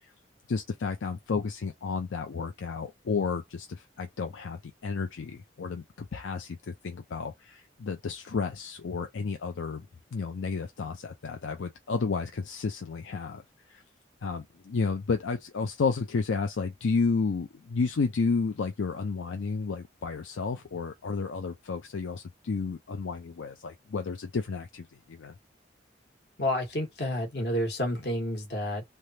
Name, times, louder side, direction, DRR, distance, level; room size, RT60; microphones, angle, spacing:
voice 1, 0.5-9.9 10.1-13.4 13.7-13.8 14.2-25.3, left 4 dB, 85° left, 0.5 m, -32 dB
voice 2, 26.4-28.8, left 1 dB, 55° left, 1.3 m, -30 dB
3.3 x 2.3 x 2.7 m
head